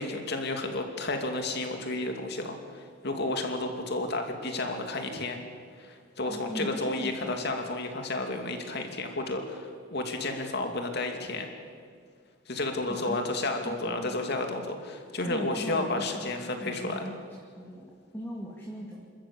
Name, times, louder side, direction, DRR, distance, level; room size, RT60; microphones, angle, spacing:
voice 1, 0.0-5.4 5.8-11.5 12.5-17.1, left 2 dB, 55° left, 4 dB, 2.6 m, -32 dB
voice 2, 6.3-7.4 12.9-13.2 13.6-14.2 15.3-16.3 16.6-17.3 17.6-19.1, equal, 10° left, -3 dB, 2.4 m, -39 dB
28.0 x 13.5 x 8.6 m, 2.1 s
head